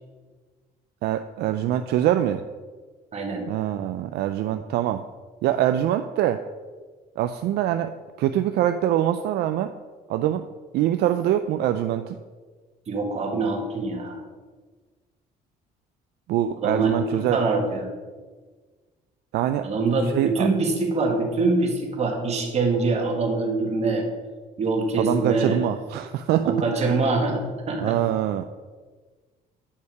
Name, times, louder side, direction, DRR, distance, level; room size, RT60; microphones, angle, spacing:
voice 1, 1.0-2.4 3.5-5.0 5.4-6.4 7.2-7.9 8.2-9.7 10.1-10.5 10.7-12.2 16.3-17.4 19.3-19.7 20.1-20.5 25.0-26.9 27.8-28.4, right 11 dB, 70° right, 8 dB, 0.4 m, -24 dB
voice 2, 3.1-3.4 12.9-14.1 16.6-17.9 19.6-24.0 24.6-25.6 26.4-27.4 27.7-27.9, right 3 dB, 40° right, 2 dB, 1.6 m, -24 dB
8.5 x 5.5 x 4.6 m, 1.4 s
cardioid pair, 110°, 17 cm